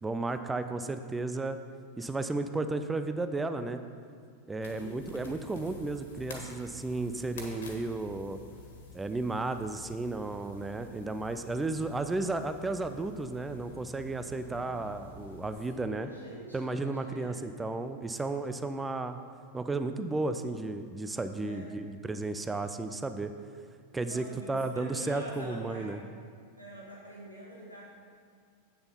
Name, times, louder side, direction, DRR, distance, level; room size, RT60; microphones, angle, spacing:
voice 1, 0.0-1.6 2.0-3.8 4.5-8.4 8.9-16.1 16.5-19.2 19.5-23.3 23.9-26.0, right 2 dB, 10° right, 9 dB, 0.4 m, -33 dB
sound 1, 4.6-15.7, left 2 dB, 60° left, 1.8 m, -49 dB
voice 2, 4.7-5.4 15.6-17.4 21.4-21.7 24.0-26.0 26.6-27.9, equal, 90° right, -5 dB, 1.3 m, -45 dB
8.8 x 6.8 x 5.6 m, 2.1 s
figure-of-eight pair, 90°, 0 cm